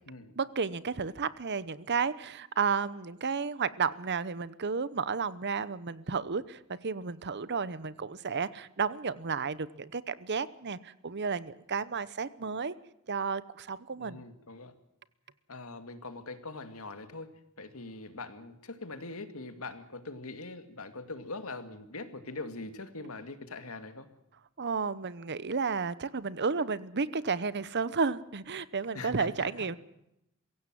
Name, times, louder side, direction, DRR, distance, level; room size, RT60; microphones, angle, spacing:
voice 1, 0.4-12.7 13.1-14.2 24.6-29.8, right 5 dB, 50° right, 17 dB, 0.9 m, -32 dB
voice 2, 14.0-14.7 15.5-17.3 17.6-24.1 28.9-29.8, left 3 dB, 70° left, 8 dB, 2.3 m, -42 dB
23.5 x 16.0 x 7.7 m, 0.82 s
head